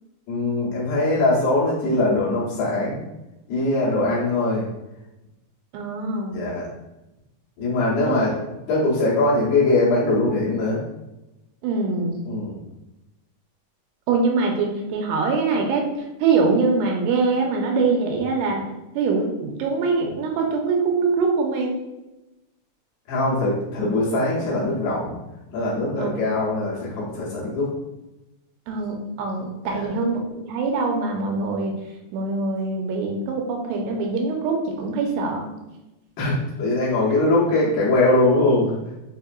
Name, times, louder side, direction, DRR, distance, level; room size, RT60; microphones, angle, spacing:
voice 1, 0.3-3.0 3.5-4.7 6.3-6.7 7.6-8.4 8.7-10.8 12.3-12.6 23.1-25.2 25.5-27.7 29.6-29.9 36.2-38.8, left 2 dB, 70° left, -7 dB, 2.8 m, -21 dB
voice 2, 5.7-6.4 8.0-8.1 11.6-12.2 14.1-15.9 16.2-18.6 19.0-21.8 26.0-26.1 28.7-31.7 32.1-35.5, right 4 dB, 85° right, 1 dB, 2.7 m, -23 dB
6.4 x 2.8 x 2.5 m, 0.98 s
omnidirectional pair, 4.9 m